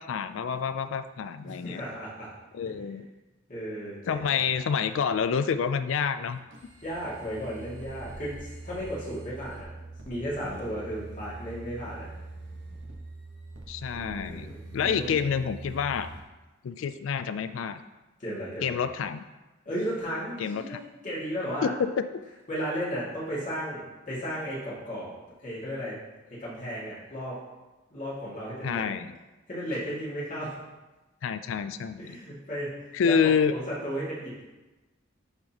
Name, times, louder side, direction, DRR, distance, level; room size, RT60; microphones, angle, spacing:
voice 1, 0.0-1.8 2.5-3.1 4.1-6.4 13.7-16.1 16.6-17.8 18.6-19.2 20.4-20.8 21.6-22.2 28.6-29.1 31.2-32.2 32.9-33.5, left 6 dB, 75° left, 11 dB, 0.3 m, -28 dB
voice 2, 1.4-2.3 3.5-4.4 6.8-8.3 8.6-9.7 10.1-12.1 13.9-15.2 18.2-18.8 19.7-21.7 22.5-25.1 25.4-26.0 26.4-27.4 27.9-28.8 29.5-30.5 32.0-32.7 33.0-34.4, equal, 40° left, -8 dB, 2.2 m, -34 dB
sound 1, 6.2-16.2, right 2 dB, 60° right, 1.1 m, -43 dB
11.0 x 3.9 x 2.9 m, 1.1 s
head